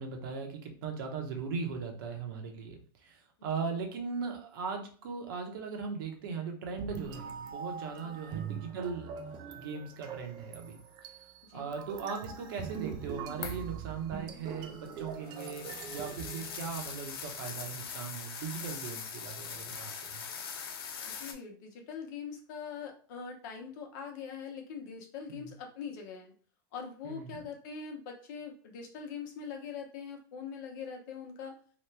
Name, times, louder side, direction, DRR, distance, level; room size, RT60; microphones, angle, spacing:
voice 1, 0.0-9.1 9.5-10.8 11.5-20.2 25.3-25.5 27.0-27.4, right 5 dB, 70° right, 3 dB, 0.9 m, -39 dB
sound 1, 6.8-17.1, right 7 dB, 35° right, 0.4 m, -43 dB
sound 2, 13.4-13.7 14.6-21.3, left 6 dB, 90° left, 0.6 m, -42 dB
voice 2, 21.0-26.3 26.7-31.5, left 6 dB, 55° left, 3 dB, 0.8 m, -42 dB
3.0 x 2.3 x 3.3 m, 0.43 s
supercardioid pair, 140°, 12 cm